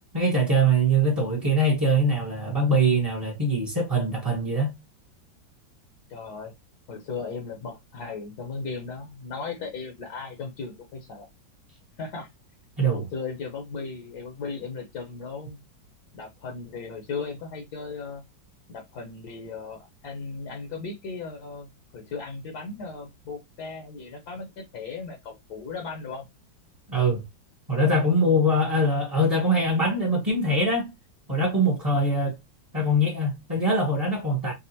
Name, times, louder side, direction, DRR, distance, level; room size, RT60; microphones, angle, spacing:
voice 1, 0.1-4.7 12.8-13.1 26.9-27.2 27.7-30.9 31.3-32.3 32.7-34.5, right 1 dB, 15° right, 0.9 m, -23 dB
voice 2, 6.1-6.5 6.9-11.3 12.0-12.3 12.9-15.6 16.1-18.2 18.7-21.7 21.9-26.2, left 4 dB, 60° left, 1.4 m, -36 dB
5.4 x 2.4 x 2.8 m
omnidirectional pair, 2.1 m